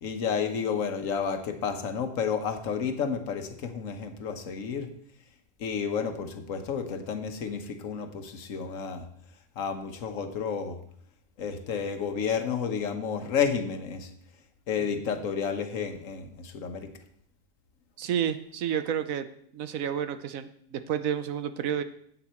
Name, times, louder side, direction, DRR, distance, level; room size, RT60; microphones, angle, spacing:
voice 1, 0.0-4.9 5.6-9.1 9.6-10.8 11.4-14.1 14.7-16.9, left 6 dB, 75° left, 7 dB, 1.3 m, -31 dB
voice 2, 18.0-19.2 19.5-21.8, right 9 dB, 85° right, 11 dB, 1.1 m, -30 dB
9.7 x 8.2 x 4.3 m, 0.67 s
omnidirectional pair, 1.4 m